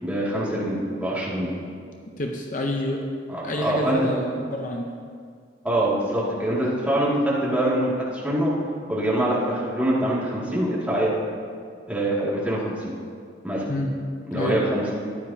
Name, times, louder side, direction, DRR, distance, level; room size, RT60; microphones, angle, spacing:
voice 1, 0.0-1.5 3.3-4.0 5.6-7.9 8.2-8.5 8.9-11.1 11.9-12.7 13.4-13.7 14.3-14.8, right 1 dB, 10° right, -8 dB, 2.3 m, -24 dB
voice 2, 2.2-3.0 3.4-4.9 13.7-13.9 14.3-14.6, left 1 dB, 45° left, 1 dB, 0.8 m, -28 dB
14.5 x 10.5 x 2.8 m, 2.2 s
head